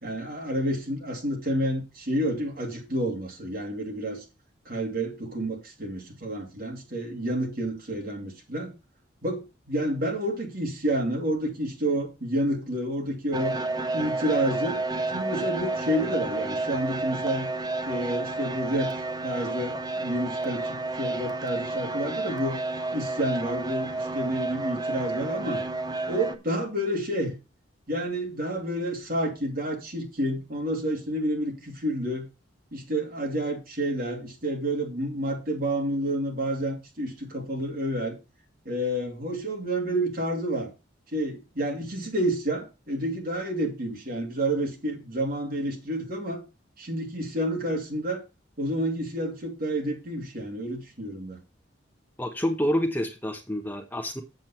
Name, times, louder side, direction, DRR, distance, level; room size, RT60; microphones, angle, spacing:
voice 1, 0.0-4.2 4.6-8.7 9.2-13.6 13.9-14.8 15.1-17.5 17.9-22.6 22.9-25.6 26.1-27.4 27.9-32.3 32.7-38.1 38.6-40.7 41.1-46.4 46.8-48.2 48.6-51.4, right 1 dB, 50° right, 2.7 m, -29 dB
sound 1, 13.3-26.3, right 2 dB, 20° right, 0.8 m, -31 dB
voice 2, 52.2-54.2, equal, 10° left, 1.0 m, -28 dB
7.6 x 7.5 x 4.4 m
head